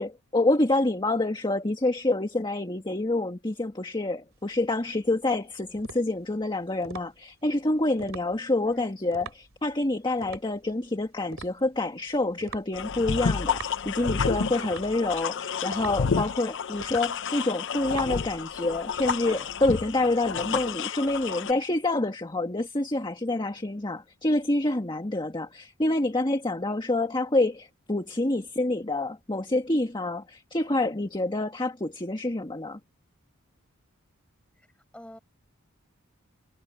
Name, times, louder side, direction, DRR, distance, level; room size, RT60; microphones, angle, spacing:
voice 1, 0.0-32.8, left 2 dB, 20° left, 1.7 m, -27 dB
sound 1, 4.3-19.9, right 5 dB, 65° right, 2.7 m, -45 dB
voice 2, 8.6-8.9 34.6-34.7 34.9-35.2, equal, 5° left, 7.9 m, -46 dB
sound 2, 12.7-21.5, left 6 dB, 60° left, 0.7 m, -30 dB
head